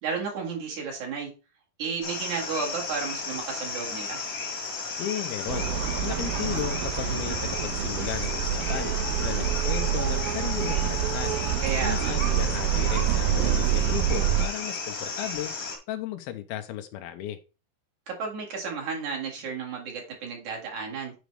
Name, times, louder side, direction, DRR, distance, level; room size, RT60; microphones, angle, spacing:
voice 1, 0.0-1.3 1.8-4.2 11.6-12.1 18.1-21.1, right 5 dB, 55° right, 3.1 m, -32 dB
sound 1, 2.0-15.8, left 4 dB, 40° left, 1.4 m, -34 dB
voice 2, 5.0-5.7 6.0-8.9 9.2-11.4 11.8-15.5 15.9-17.4, left 12 dB, 90° left, 2.5 m, -35 dB
sound 2, 5.5-14.5, right 10 dB, 80° right, 2.5 m, -27 dB
Bowed string instrument, 8.6-14.3, equal, 20° right, 1.1 m, -47 dB
9.2 x 5.1 x 3.3 m
omnidirectional pair, 4.4 m